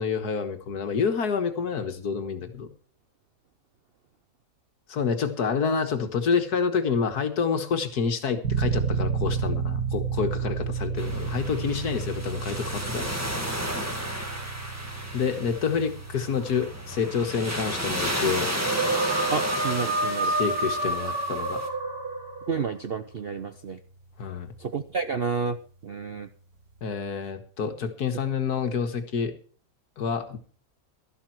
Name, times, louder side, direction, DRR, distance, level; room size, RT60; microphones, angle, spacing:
voice 1, 0.0-2.7 4.9-13.2 15.1-18.6 20.2-21.7 24.2-24.5 26.8-29.3 30.0-30.4, left 6 dB, 65° left, 8 dB, 1.9 m, -28 dB
sound 1, 8.4-22.9, right 6 dB, 90° right, 3.0 m, -33 dB
sound 2, 11.0-21.7, equal, 10° right, 1.9 m, -33 dB
sound 3, 18.5-22.6, right 2 dB, 35° right, 2.7 m, -28 dB
voice 2, 19.3-20.3 22.5-23.8 24.6-25.6 25.8-26.3, right 5 dB, 55° right, 10 dB, 0.7 m, -30 dB
13.0 x 12.0 x 4.6 m, 0.41 s
omnidirectional pair, 1.8 m